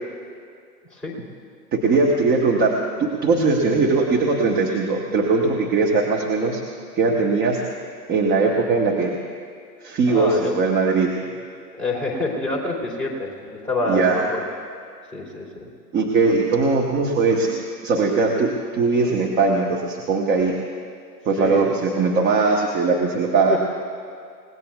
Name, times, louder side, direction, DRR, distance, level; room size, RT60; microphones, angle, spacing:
voice 1, 1.7-2.7 3.0-6.6 6.9-7.6 8.1-9.1 9.8-11.1 13.8-14.2 15.9-20.5 21.2-23.6, right 4 dB, 20° right, 0 dB, 1.2 m, -20 dB
voice 2, 10.1-10.5 11.8-14.4 15.1-15.7 21.4-21.7 23.5-23.6, left 2 dB, ahead, -5 dB, 3.0 m, -26 dB
29.5 x 18.0 x 2.4 m, 2.2 s
figure-of-eight pair, 110°, 49 cm